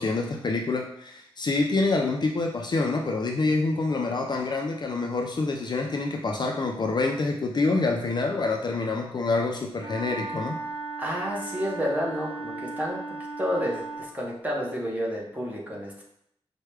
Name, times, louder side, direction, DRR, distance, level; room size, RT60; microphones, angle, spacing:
voice 1, 0.0-10.6, left 3 dB, 45° left, 1 dB, 0.4 m, -26 dB
Wind instrument woodwind instrument, 9.8-14.2, right 3 dB, 70° right, 0.4 m, -36 dB
voice 2, 11.0-13.0 13.4-16.0, equal, 15° right, -3 dB, 0.8 m, -30 dB
4.4 x 2.2 x 3.2 m, 0.74 s
wide cardioid pair, 145°, 10 cm